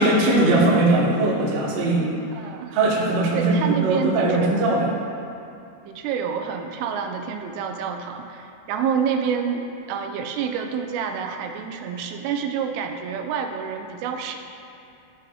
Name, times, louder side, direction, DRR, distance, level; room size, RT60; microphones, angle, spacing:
voice 1, 0.0-2.1 2.7-4.9, right 2 dB, 70° right, -5 dB, 2.0 m, -20 dB
voice 2, 2.3-2.8 3.3-4.7 5.9-14.4, right 7 dB, 90° right, 4 dB, 3.1 m, -28 dB
14.5 x 4.9 x 2.3 m, 2.7 s
omnidirectional pair, 5.4 m